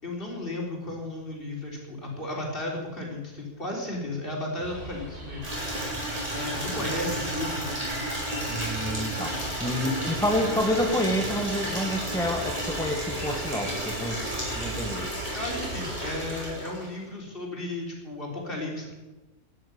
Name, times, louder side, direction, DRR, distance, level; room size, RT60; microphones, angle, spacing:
voice 1, 0.0-5.4 6.3-7.7 15.3-18.9, left 1 dB, 35° left, -2 dB, 4.0 m, -34 dB
sound 1, 4.6-16.4, right 1 dB, 40° right, 6.6 m, -40 dB
Water tap faucet / Liquid, 5.4-17.0, right 1 dB, 25° right, 6.1 m, -32 dB
voice 2, 8.5-14.3 14.5-15.1, left 1 dB, 5° left, 2 dB, 1.4 m, -28 dB
13.0 x 11.0 x 8.8 m, 1.1 s
omnidirectional pair, 1.6 m